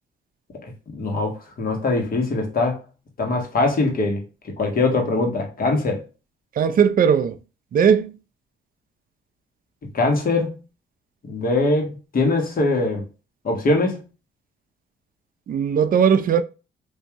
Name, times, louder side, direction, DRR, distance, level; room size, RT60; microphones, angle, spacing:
voice 1, 0.6-2.8 3.2-4.2 4.6-6.0 9.9-10.5 11.3-13.1 13.4-14.0, left 2 dB, 45° left, 1.3 m, -22 dB
voice 2, 6.6-7.3 7.7-8.1 15.5-16.4, right 7 dB, 45° right, 0.5 m, -18 dB
3.6 x 2.7 x 2.9 m
cardioid pair, 90°, 20 cm